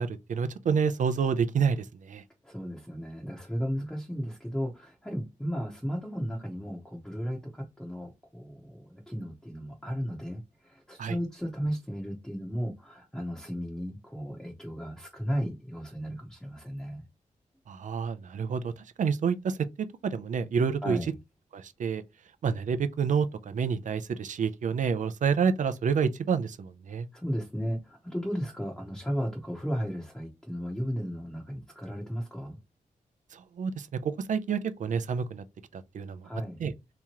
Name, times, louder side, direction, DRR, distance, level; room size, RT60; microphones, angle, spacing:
voice 1, 0.0-2.2 11.0-11.2 17.7-18.7 19.0-19.6 20.0-21.0 21.5-22.0 22.4-27.1 33.3-35.4 35.7-36.3 36.6-36.7, right 6 dB, 65° right, 0.5 m, -28 dB
voice 2, 2.4-17.0 20.8-21.1 27.1-32.6 36.2-36.6, equal, 5° left, 0.9 m, -35 dB
3.6 x 2.9 x 2.9 m
wide cardioid pair, 120°, 14 cm